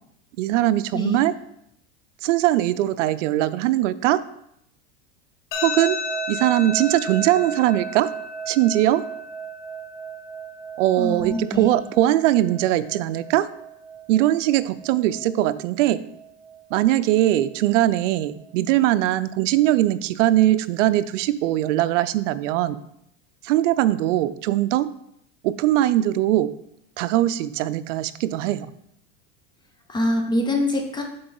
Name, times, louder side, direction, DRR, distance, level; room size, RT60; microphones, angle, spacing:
voice 1, 0.4-1.3 2.2-4.3 5.6-6.0 6.3-8.1 8.5-9.1 10.8-13.5 14.1-16.0 16.7-22.8 23.4-24.9 25.4-26.5 27.0-28.7, right 14 dB, 75° right, 14 dB, 0.5 m, -21 dB
sound 1, 5.5-18.5, right 1 dB, 70° left, 1.5 m, -35 dB
voice 2, 11.0-11.7 29.9-31.0, left 1 dB, 10° left, 2 dB, 0.6 m, -24 dB
7.8 x 3.9 x 3.8 m, 0.75 s
supercardioid pair, 155°, 37 cm